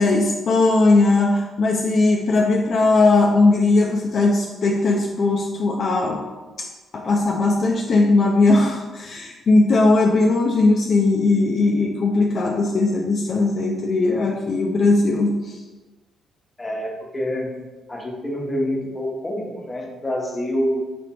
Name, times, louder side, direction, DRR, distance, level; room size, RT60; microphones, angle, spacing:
voice 1, 0.0-6.2 6.6-6.7 6.9-15.6, left 3 dB, 55° left, -1 dB, 0.5 m, -18 dB
voice 2, 16.6-17.5 17.9-20.8, equal, 20° left, -2 dB, 0.9 m, -26 dB
5.1 x 3.3 x 2.9 m, 1.2 s
cardioid pair, 90°, 0 cm